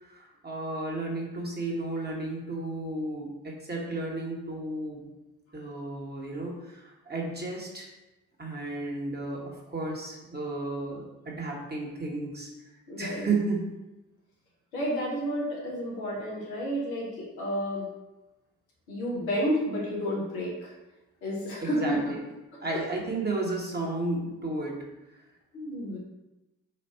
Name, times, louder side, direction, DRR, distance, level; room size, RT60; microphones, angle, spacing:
voice 1, 0.1-5.0 5.5-7.9 8.4-12.5 13.0-13.6 21.6-22.2 22.6-24.8, right 2 dB, 25° right, -2 dB, 1.4 m, -33 dB
voice 2, 12.9-13.3 14.7-17.8 18.9-20.7 21.2-22.1 22.7-22.8 25.5-26.0, equal, 85° left, -4 dB, 1.0 m, -31 dB
4.3 x 2.5 x 4.3 m, 1.0 s
hypercardioid pair, 45°, 41 cm